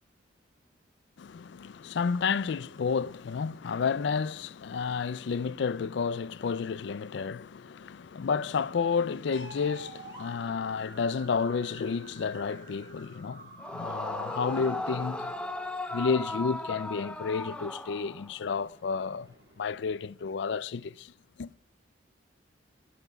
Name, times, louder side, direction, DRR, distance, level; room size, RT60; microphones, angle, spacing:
voice 1, 1.2-15.5 15.9-21.1 21.4-21.5, left 5 dB, 65° left, 0.4 m, -31 dB
sound 1, 9.3-20.0, right 2 dB, 60° right, 2.3 m, -51 dB
Yell / Screaming, 13.6-18.5, left 1 dB, 5° left, 0.5 m, -36 dB
14.5 x 6.0 x 6.7 m
head